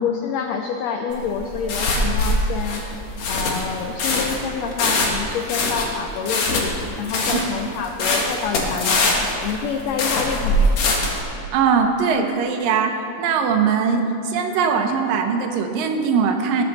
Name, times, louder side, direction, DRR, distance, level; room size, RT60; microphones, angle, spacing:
voice 1, 0.0-2.9 3.3-10.7, left 6 dB, 85° left, 4 dB, 1.5 m, -27 dB
sound 1, 1.1-11.2, left 2 dB, 60° left, 2.5 m, -22 dB
voice 2, 11.5-16.6, right 6 dB, 85° right, 5 dB, 2.7 m, -21 dB
20.0 x 8.4 x 4.1 m, 2.7 s
omnidirectional pair, 3.8 m